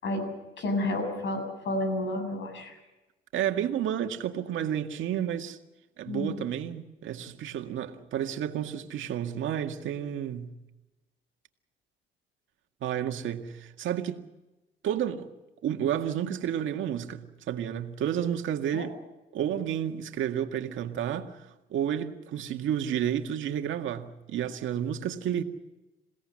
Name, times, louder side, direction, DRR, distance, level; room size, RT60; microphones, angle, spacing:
voice 1, 0.6-2.8 6.1-6.4 18.7-18.9, left 1 dB, 70° left, 7.4 m, -30 dB
voice 2, 3.3-5.6 6.0-10.6 12.8-14.2 14.8-15.3 15.6-18.9 19.3-21.5 21.7-25.4, right 10 dB, 75° right, 2.0 m, -31 dB
28.0 x 17.0 x 7.7 m
cardioid pair, 90°, 20 cm